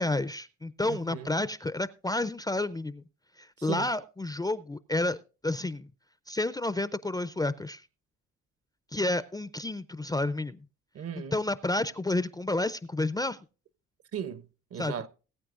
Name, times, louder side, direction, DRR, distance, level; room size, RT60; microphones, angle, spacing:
voice 1, 0.0-3.0 3.4-5.2 5.4-5.9 6.3-7.8 8.9-10.6 11.3-13.4 14.8-14.9, left 2 dB, 15° left, 0.4 m, -30 dB
voice 2, 0.9-1.3 3.7-3.9 10.9-11.4 14.1-15.1, right 8 dB, 50° right, 0.8 m, -37 dB
20.0 x 8.7 x 2.5 m
cardioid pair, 90°, 30 cm